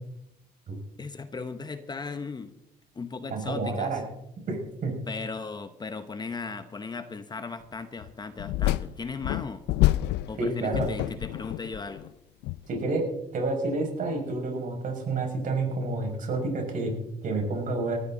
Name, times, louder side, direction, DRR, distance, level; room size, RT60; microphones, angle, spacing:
voice 1, 1.0-2.5 2.9-4.0 5.1-9.6 10.3-12.1, left 4 dB, 25° left, 10 dB, 1.0 m, -37 dB
voice 2, 3.3-4.0 4.5-4.9 10.4-10.9 12.7-13.1 13.3-16.9 17.2-18.0, right 3 dB, 50° right, 2 dB, 5.8 m, -29 dB
sound 1, 8.0-8.1 8.4-10.4 10.7-12.1 12.4-12.6, left 16 dB, 85° left, 0.5 m, -27 dB
19.0 x 14.0 x 3.9 m, 0.80 s
cardioid pair, 110°, 17 cm